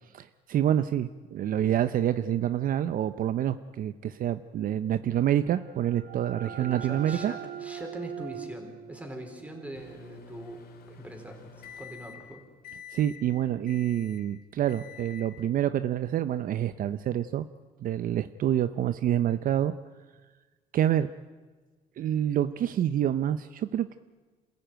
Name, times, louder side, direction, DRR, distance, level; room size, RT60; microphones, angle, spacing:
voice 1, 0.2-7.3 12.9-17.5 17.8-19.7 20.7-21.1 22.0-24.0, right 11 dB, 55° right, 13 dB, 0.7 m, -27 dB
sound 1, 5.4-10.9, right 8 dB, 75° right, 1.7 m, -42 dB
voice 2, 6.4-12.4, equal, 10° right, 4 dB, 4.4 m, -43 dB
Microwave oven, 9.7-12.3 12.6-13.2 13.7-14.3 14.7-15.3, left 7 dB, 65° left, 3.1 m, -48 dB
26.5 x 15.0 x 9.2 m, 1.4 s
cardioid pair, 110°, 17 cm